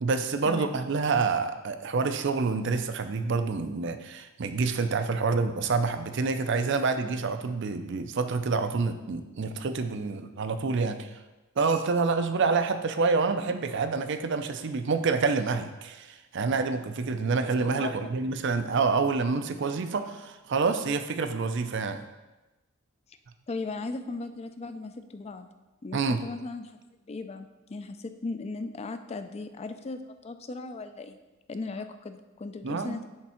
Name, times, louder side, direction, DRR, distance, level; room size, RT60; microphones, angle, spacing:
voice 1, 0.0-11.1 11.6-22.0 25.9-26.2 32.6-33.0, right 4 dB, 60° right, 9 dB, 0.5 m, -27 dB
voice 2, 23.5-25.5 25.8-26.7 27.1-31.2 31.5-33.1, left 3 dB, 30° left, 9 dB, 0.4 m, -37 dB
10.5 x 3.6 x 4.3 m, 1.1 s
head